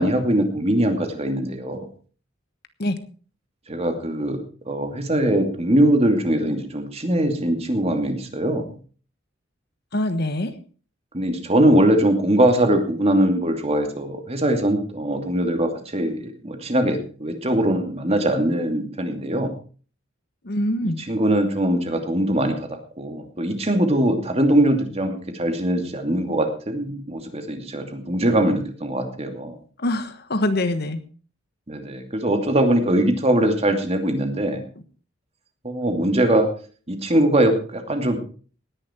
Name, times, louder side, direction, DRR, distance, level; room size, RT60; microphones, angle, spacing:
voice 1, 0.0-1.9 3.7-4.4 4.7-8.7 11.1-19.5 20.8-22.7 23.0-29.5 31.7-34.6 35.6-36.5 36.9-38.2, right 1 dB, 30° right, 5 dB, 2.5 m, -21 dB
voice 2, 9.9-10.5 20.4-21.0 29.8-31.0, left 1 dB, 55° left, 11 dB, 1.3 m, -24 dB
18.5 x 10.5 x 4.5 m, 0.40 s
head